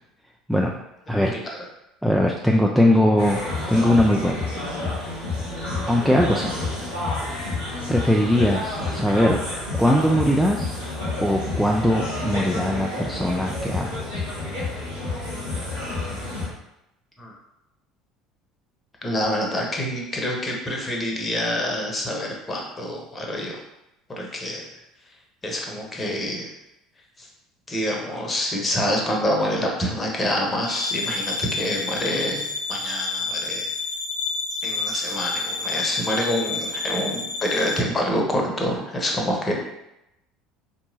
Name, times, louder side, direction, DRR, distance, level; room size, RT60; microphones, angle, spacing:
voice 1, 1.1-1.6 2.0-4.5 5.0-5.2 5.9-6.7 7.9-9.4 9.8-10.8 11.2-14.2, left 1 dB, ahead, 0 dB, 0.3 m, -21 dB
sound 1, 3.2-16.5, left 2 dB, 90° right, 1.4 m, -29 dB
voice 2, 19.0-23.6 24.1-24.7 25.4-26.5 27.2-27.3 27.7-33.7 34.6-39.5, left 1 dB, 25° left, 0 dB, 0.9 m, -26 dB
sound 2, 30.6-37.8, left 4 dB, 70° left, 0.5 m, -29 dB
4.3 x 2.9 x 2.7 m, 0.87 s
figure-of-eight pair, 65°, 0 cm